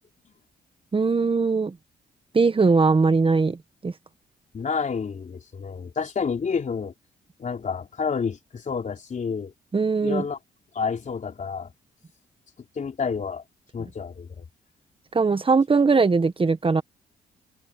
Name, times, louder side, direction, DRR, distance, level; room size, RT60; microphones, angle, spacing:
voice 1, 0.9-1.7 2.3-3.6 3.8-3.9 9.7-10.3 15.1-16.8, right 4 dB, 30° right, 1.5 m, -20 dB
voice 2, 4.5-6.9 7.4-9.5 10.0-10.4 10.7-11.7 12.8-13.4 13.7-14.4, left 5 dB, 50° left, 3.7 m, -29 dB
open air
cardioid pair, 70°, 17 cm